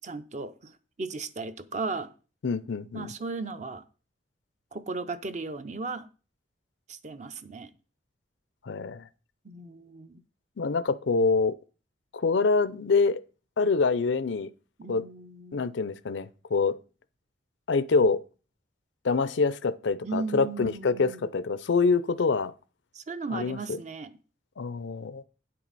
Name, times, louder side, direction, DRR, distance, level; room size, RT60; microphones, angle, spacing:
voice 1, 0.0-2.1 2.9-3.8 4.7-6.1 6.9-7.7 9.4-10.2 14.8-15.8 20.0-21.3 22.9-24.1, right 3 dB, 40° right, 0.6 m, -36 dB
voice 2, 2.4-3.1 8.6-9.1 10.6-11.5 12.1-13.2 13.6-14.5 14.9-15.0 15.5-16.8 17.7-18.2 19.0-22.5 23.3-23.8 24.6-25.2, left 4 dB, 75° left, 0.5 m, -25 dB
9.5 x 7.5 x 4.1 m
head